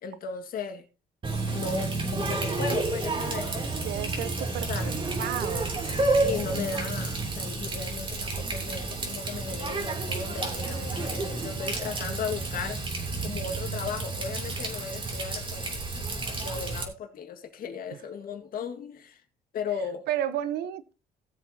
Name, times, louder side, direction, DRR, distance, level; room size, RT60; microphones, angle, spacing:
voice 1, 0.0-0.8 1.5-3.6 4.7-4.9 6.1-19.2 19.5-20.1, left 5 dB, 55° left, 2.0 m, -36 dB
Water tap faucet, 1.2-16.8, right 3 dB, 30° right, 3.0 m, -30 dB
voice 2, 3.8-5.7 20.1-20.9, right 11 dB, 75° right, 1.0 m, -32 dB
18.0 x 7.3 x 2.9 m
cardioid pair, 110°, 17 cm